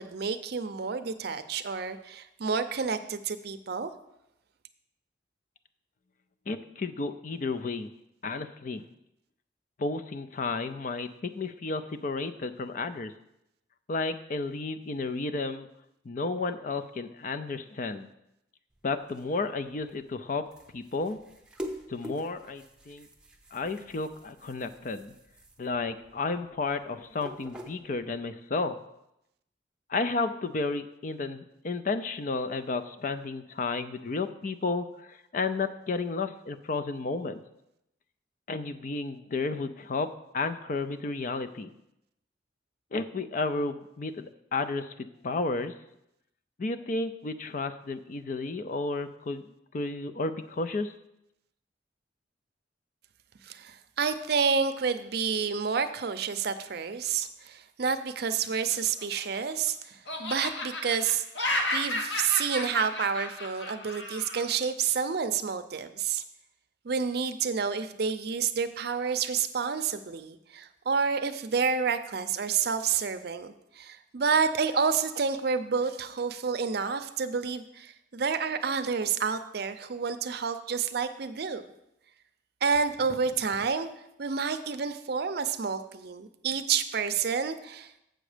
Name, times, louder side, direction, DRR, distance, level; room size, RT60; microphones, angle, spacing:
voice 1, 0.0-3.9 53.4-61.2 61.7-66.2 66.8-81.6 82.6-83.9 84.2-87.9, right 6 dB, 60° right, 10 dB, 0.5 m, -29 dB
voice 2, 6.5-7.9 8.2-8.8 9.8-13.1 13.9-15.7 16.0-18.1 18.8-20.5 20.7-21.2 21.9-23.1 23.5-25.1 25.6-28.8 29.9-37.4 38.5-40.1 40.3-41.7 42.9-45.7 46.6-49.4 49.7-50.9, left 3 dB, 45° left, 9 dB, 0.5 m, -32 dB
sound 1, 18.7-28.3, equal, 5° right, 0.7 m, -46 dB
Laughter, 58.8-59.7 60.1-64.4, left 1 dB, 80° left, 1.4 m, -33 dB
7.8 x 6.3 x 5.0 m, 0.83 s
head